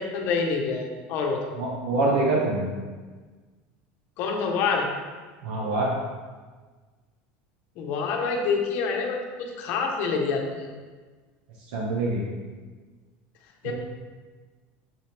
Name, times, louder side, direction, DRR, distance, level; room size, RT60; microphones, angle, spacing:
voice 1, 0.0-1.4 4.2-4.9 7.8-10.7 13.6-13.7, left 5 dB, 45° left, 1 dB, 1.0 m, -27 dB
voice 2, 1.6-2.7 5.4-5.9 11.7-12.2 13.6-13.7, right 2 dB, 85° right, -3 dB, 1.2 m, -25 dB
6.8 x 6.1 x 3.4 m, 1.4 s
cardioid pair, 180°, 5 cm